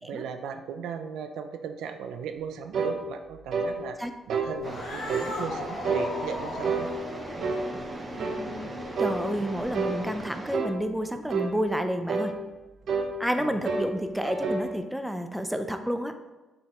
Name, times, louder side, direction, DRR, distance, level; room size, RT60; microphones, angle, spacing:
voice 1, 0.0-4.0 4.3-6.9 13.4-13.6, right 7 dB, 85° right, 8 dB, 0.5 m, -37 dB
sound 1, 2.7-3.0 3.5-3.7 4.3-4.5 5.1-5.3 5.8-6.1 6.6-6.9 7.4-7.7 8.2-8.4 9.0-9.2 9.7-10.0 10.5-10.8 11.3-11.5 12.1-12.3 12.9-13.1 13.6-13.9 14.2-14.7, right 4 dB, 60° right, 0.9 m, -28 dB
Cat, 4.5-10.2, left 2 dB, 80° left, 1.9 m, -39 dB
sound 2, 4.6-10.6, right 2 dB, 25° right, 0.9 m, -39 dB
voice 2, 9.0-12.3 13.2-16.1, equal, 5° right, 7 dB, 0.5 m, -30 dB
6.6 x 5.1 x 3.0 m, 1.1 s
cardioid pair, 90°, 0 cm